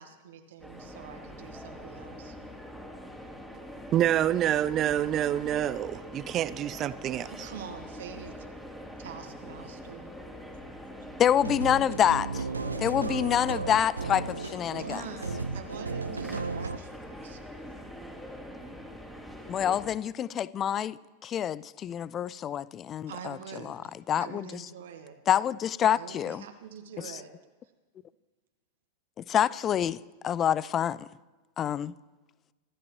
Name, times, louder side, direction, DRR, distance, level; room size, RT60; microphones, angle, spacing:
voice 1, 0.0-2.4 7.2-8.5 9.0-10.1 11.0-11.1 14.8-17.4 23.1-25.2 25.9-27.3, right 7 dB, 60° right, 1.5 m, -45 dB
sound 1, 0.6-19.9, equal, ahead, 2.6 m, -44 dB
voice 2, 3.9-7.3, right 11 dB, 30° right, 0.5 m, -27 dB
voice 3, 11.2-12.4 12.8-15.0 19.5-23.4 23.7-23.8 24.1-24.5 25.3-26.4 29.3-30.0 30.2-31.0 31.6-31.9, left 9 dB, 25° left, 0.4 m, -27 dB
sound 2, 11.3-16.8, right 4 dB, 80° right, 0.6 m, -34 dB
25.5 x 13.0 x 3.1 m
figure-of-eight pair, 90°, 0 cm